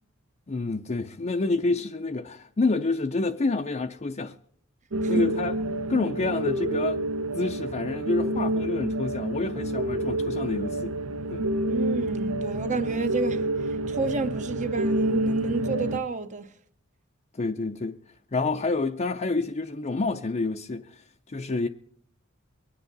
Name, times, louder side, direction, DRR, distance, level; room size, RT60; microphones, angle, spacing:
voice 1, 0.5-4.4 5.1-5.6 5.9-7.0 7.3-11.0 11.3-11.5 17.3-18.0 18.3-21.7, left 3 dB, 35° left, 0.5 m, -28 dB
sound 1, 4.9-16.0, right 1 dB, 70° right, 0.8 m, -28 dB
voice 2, 11.7-13.5 13.9-16.5, right 4 dB, 35° right, 0.7 m, -30 dB
23.5 x 9.6 x 4.0 m
head